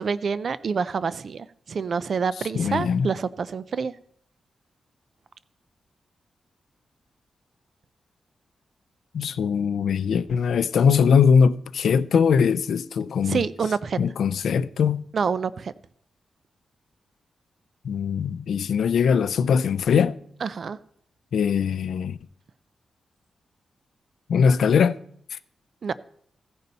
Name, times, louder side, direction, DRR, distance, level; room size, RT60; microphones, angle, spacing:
voice 1, 0.0-3.9 13.3-14.0 15.1-15.7 20.4-20.8 25.8-25.9, right 5 dB, 60° right, 0.4 m, -27 dB
voice 2, 2.5-3.1 9.1-13.4 14.0-15.0 17.8-20.1 21.3-22.2 24.3-25.0, left 6 dB, 90° left, 0.3 m, -21 dB
15.5 x 5.4 x 4.0 m
wide cardioid pair, 115°, 0 cm